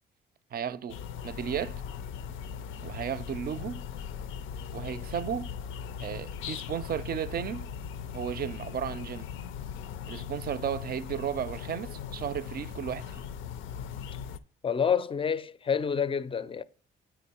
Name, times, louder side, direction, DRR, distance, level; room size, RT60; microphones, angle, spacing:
voice 1, 0.5-1.8 2.8-3.8 4.7-5.5 6.0-7.7 8.1-9.3 10.1-13.2, right 9 dB, 50° right, 0.5 m, -34 dB
sound 1, 0.9-14.4, left 8 dB, 90° left, 0.5 m, -39 dB
voice 2, 14.6-16.6, left 7 dB, 25° left, 0.4 m, -28 dB
8.9 x 4.5 x 4.3 m
cardioid pair, 90°, 20 cm